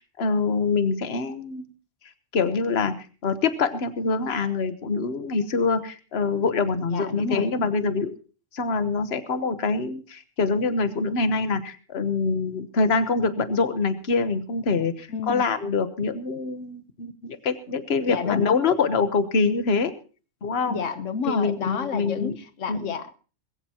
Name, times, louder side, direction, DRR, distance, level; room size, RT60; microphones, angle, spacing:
voice 1, 0.0-1.6 2.3-2.9 3.2-8.1 8.5-19.9 20.4-20.8 21.3-22.4 22.7-22.9, left 4 dB, 55° left, 11 dB, 1.4 m, -25 dB
voice 2, 6.9-7.5 15.1-15.5 18.0-18.4 20.6-23.2, left 6 dB, 85° left, 10 dB, 1.3 m, -31 dB
21.0 x 15.5 x 2.9 m, 0.38 s
omnidirectional pair, 1.3 m